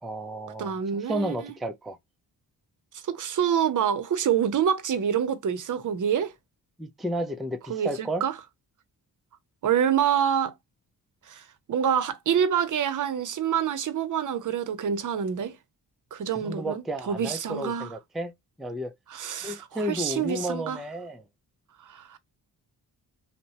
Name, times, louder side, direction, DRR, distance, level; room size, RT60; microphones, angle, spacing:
voice 1, 0.0-2.0 6.8-8.2 16.4-18.3 18.6-18.9 19.4-21.2, right 1 dB, ahead, 0.3 m, -32 dB
voice 2, 0.6-1.5 2.9-6.3 7.7-8.3 9.6-10.5 11.3-15.6 16.1-17.9 19.1-20.8 21.8-22.2, right 8 dB, 50° right, 0.6 m, -27 dB
2.8 x 2.1 x 2.7 m
cardioid pair, 55°, 41 cm